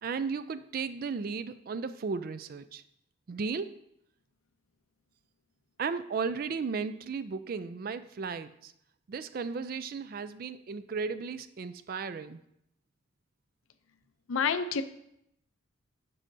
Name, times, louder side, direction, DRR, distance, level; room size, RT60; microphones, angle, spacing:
voice 1, 0.0-2.8 3.3-3.8 5.8-8.7 9.1-12.4, right 5 dB, 45° right, 13 dB, 0.3 m, -35 dB
voice 2, 14.3-14.8, left 6 dB, 75° left, 11 dB, 0.5 m, -28 dB
9.7 x 6.2 x 2.6 m, 0.77 s
head